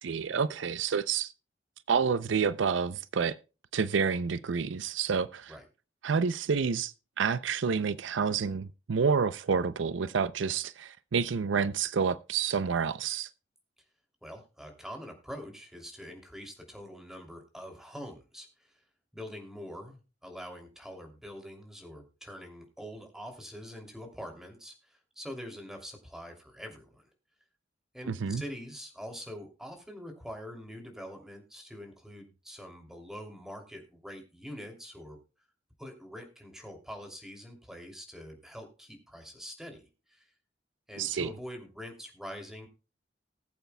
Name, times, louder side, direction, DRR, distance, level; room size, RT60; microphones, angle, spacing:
voice 1, 0.0-1.3 1.9-3.3 3.7-5.5 6.0-13.3 28.1-28.4 41.0-41.3, right 6 dB, 80° right, 0.5 m, -29 dB
voice 2, 14.2-18.7 19.1-27.1 27.9-35.2 35.8-40.3 40.9-42.7, equal, 5° right, 2.7 m, -44 dB
19.5 x 8.1 x 2.2 m
head